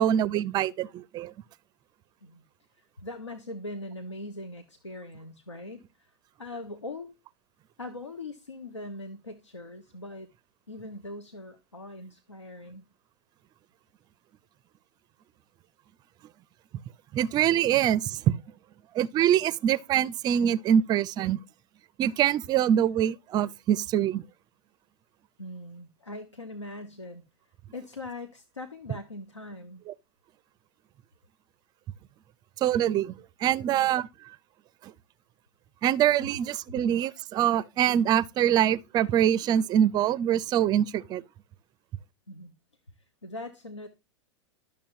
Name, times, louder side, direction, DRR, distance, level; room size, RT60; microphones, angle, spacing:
voice 1, 0.0-1.3 17.1-18.3 18.9-21.4 22.0-24.2 32.6-34.1 34.8-34.9 35.8-41.2, right 10 dB, 30° right, 0.4 m, -24 dB
voice 2, 2.8-7.2 7.8-10.3 10.7-12.9 25.4-27.2 27.7-29.8 42.3-42.5 43.2-43.9, left 2 dB, 90° left, 0.8 m, -41 dB
11.5 x 6.7 x 2.6 m
figure-of-eight pair, 90°, 15 cm